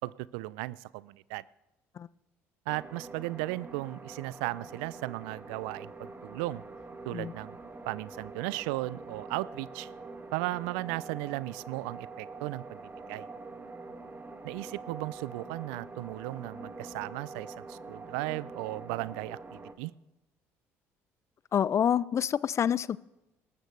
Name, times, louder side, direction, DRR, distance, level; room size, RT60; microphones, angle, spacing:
voice 1, 0.0-1.4 2.7-6.6 7.0-7.6 7.9-9.9 10.3-12.8 13.1-13.3 14.4-19.9, right 20 dB, 75° right, 21 dB, 0.3 m, -36 dB
sound 1, 2.7-19.7, right 3 dB, 30° right, 1.7 m, -45 dB
voice 2, 21.5-23.0, left 8 dB, 45° left, 21 dB, 0.4 m, -27 dB
19.5 x 13.0 x 3.2 m, 0.94 s
hypercardioid pair, 60°, 7 cm